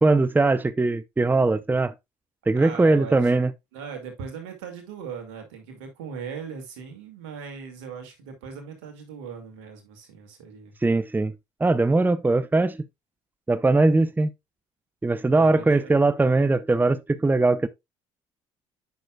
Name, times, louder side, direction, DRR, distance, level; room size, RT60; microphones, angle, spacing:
voice 1, 0.0-1.9 2.5-3.5 10.8-11.3 11.6-12.8 13.5-14.3 15.0-17.7, right 3 dB, 10° right, 0.6 m, -20 dB
voice 2, 2.6-3.3 3.7-10.7 15.3-15.9, right 6 dB, 85° right, 2.1 m, -39 dB
9.3 x 6.1 x 2.3 m
hypercardioid pair, 60°, 15 cm